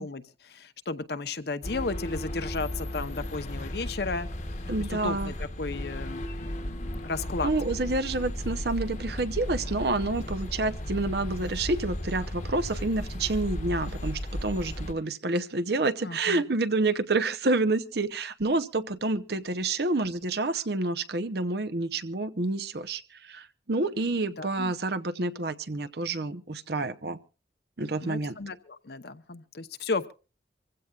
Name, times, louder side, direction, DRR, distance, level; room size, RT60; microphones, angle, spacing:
voice 1, 0.0-4.3 4.9-7.5 16.0-16.4 24.4-24.7 28.0-30.1, left 3 dB, 60° left, 0.8 m, -34 dB
sound 1, 1.6-14.9, left 1 dB, 40° left, 1.2 m, -35 dB
voice 2, 4.7-5.3 7.4-27.2 27.8-28.4, right 2 dB, 60° right, 0.8 m, -28 dB
25.5 x 15.5 x 2.4 m
head